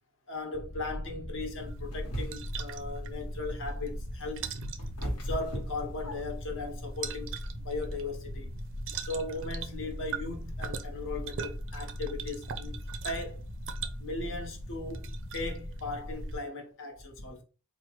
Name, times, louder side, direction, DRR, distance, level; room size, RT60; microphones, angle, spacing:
voice 1, 0.3-4.5 5.0-8.5 9.0-12.8 13.0-13.4 14.0-17.4, left 3 dB, 60° left, 1.0 m, -38 dB
sound 1, 0.5-16.4, left 1 dB, 30° left, 0.4 m, -40 dB
sound 2, 1.6-16.4, right 7 dB, 60° right, 0.4 m, -43 dB
sound 3, 1.9-2.7 4.2-6.5, right 1 dB, 90° left, 1.1 m, -37 dB
4.4 x 2.1 x 3.0 m
head